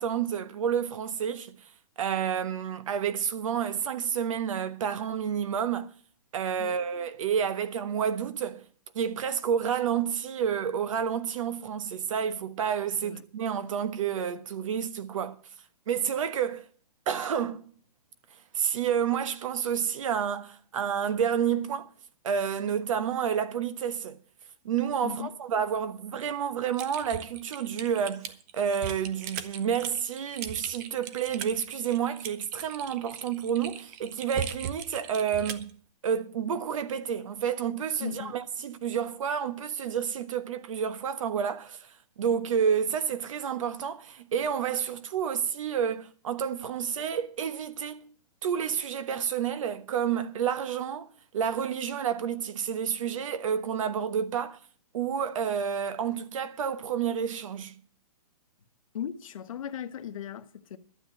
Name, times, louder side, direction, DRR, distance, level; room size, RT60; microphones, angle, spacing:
voice 1, 0.0-1.6 2.0-5.9 6.3-8.7 8.9-15.4 15.9-16.7 17.1-17.7 18.5-21.9 22.2-24.2 24.6-35.8 36.0-41.9 42.2-48.1 48.4-54.6 54.9-57.8, right 8 dB, 55° right, 1.1 m, -30 dB
voice 2, 25.0-25.4 38.0-38.4 58.9-60.8, left 9 dB, 55° left, 1.2 m, -37 dB
Typing, 26.7-35.7, right 9 dB, 25° right, 0.8 m, -39 dB
12.5 x 7.9 x 7.2 m
hypercardioid pair, 150°, 20 cm